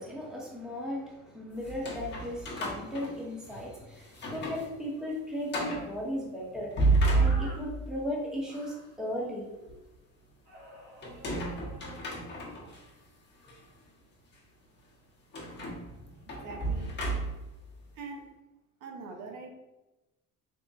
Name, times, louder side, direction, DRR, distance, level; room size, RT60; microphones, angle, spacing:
voice 1, 0.0-6.7 7.1-9.8, equal, ahead, -4 dB, 0.8 m, -36 dB
sound 1, 1.6-3.7 4.1-4.7 5.0-5.1 5.5-5.9 6.5-7.9 11.0-12.8 13.4-13.6 15.3-17.6, right 2 dB, 30° left, 0.9 m, -31 dB
sound 2, 7.0-7.6 8.5-9.0 10.5-12.8, equal, 25° right, 1.1 m, -50 dB
voice 2, 16.2-16.9 17.9-18.3 18.8-19.5, right 4 dB, 65° right, 2 dB, 0.7 m, -43 dB
3.6 x 2.1 x 4.0 m, 1.0 s
cardioid pair, 150°, 34 cm